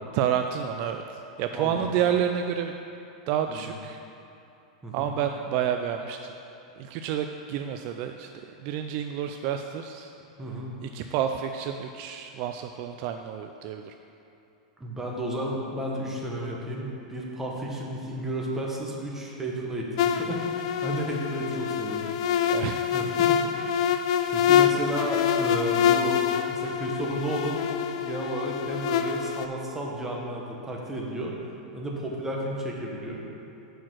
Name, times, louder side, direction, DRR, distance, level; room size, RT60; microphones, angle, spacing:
voice 1, 0.1-2.7 3.3-4.0 4.9-6.3 6.8-8.3 8.6-10.1 10.8-13.9 22.5-22.8, right 9 dB, 50° right, 6 dB, 0.3 m, -29 dB
voice 2, 1.5-1.9 3.5-3.6 4.8-5.1 10.4-10.8 14.8-22.0 22.9-23.4 24.3-27.6 28.0-31.3 31.7-33.2, right 1 dB, 10° right, -2 dB, 1.1 m, -32 dB
sound 1, 20.0-29.5, left 9 dB, 65° left, 0.4 m, -25 dB
6.2 x 4.5 x 6.1 m, 2.7 s
hypercardioid pair, 120°, 4 cm